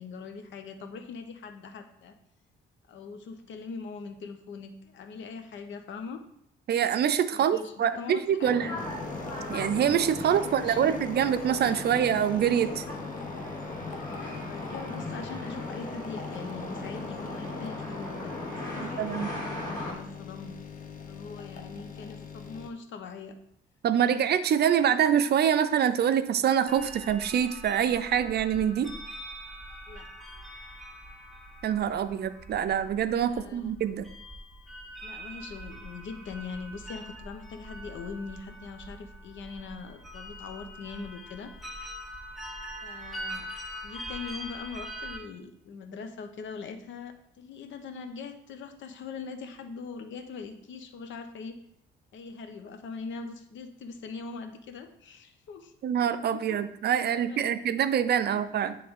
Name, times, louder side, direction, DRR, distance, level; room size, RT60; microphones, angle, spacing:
voice 1, 0.0-2.2 2.9-6.2 7.3-8.9 10.2-11.0 11.8-12.0 13.9-20.6 21.0-23.4 29.9-30.1 33.3-33.7 35.0-41.5 42.8-43.5 43.8-51.6 52.1-55.7 56.3-56.6 57.0-57.6 58.3-58.4, left 5 dB, 70° left, 7 dB, 0.8 m, -42 dB
voice 2, 6.7-8.7 9.5-12.8 18.8-19.3 23.8-28.9 31.6-34.1 55.8-58.8, right 9 dB, 55° right, 12 dB, 0.5 m, -25 dB
sound 1, 8.4-19.9, left 2 dB, 20° left, 2.5 m, -37 dB
sound 2, 8.8-22.7, left 6 dB, 45° left, 0.8 m, -43 dB
sound 3, 26.7-45.2, equal, ahead, 0.9 m, -43 dB
9.5 x 3.3 x 3.6 m, 0.73 s
cardioid pair, 90°, 20 cm